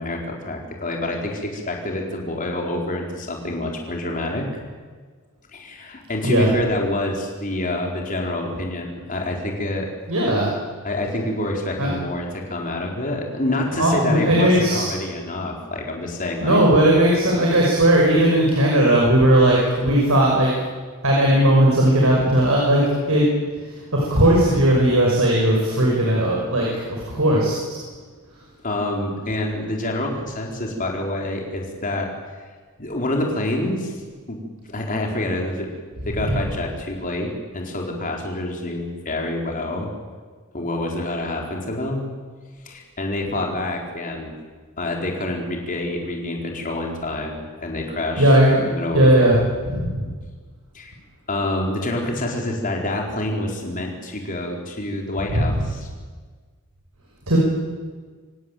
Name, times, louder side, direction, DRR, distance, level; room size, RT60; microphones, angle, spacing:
voice 1, 0.0-4.5 5.5-9.9 10.8-16.6 28.6-32.1 32.8-33.9 34.3-35.7 36.1-39.9 40.5-42.0 42.6-44.3 44.8-48.4 48.6-49.4 50.7-50.9 51.3-55.9, left 1 dB, 40° left, 0 dB, 4.4 m, -27 dB
voice 2, 10.1-10.5 11.8-11.9 13.8-14.9 16.4-20.5 21.0-23.3 23.9-26.7 27.1-27.6 48.2-49.4 49.7-50.1 55.3-55.5 57.3-57.4, right 1 dB, 75° right, -2 dB, 6.1 m, -17 dB
26.0 x 17.0 x 9.2 m, 1.5 s
head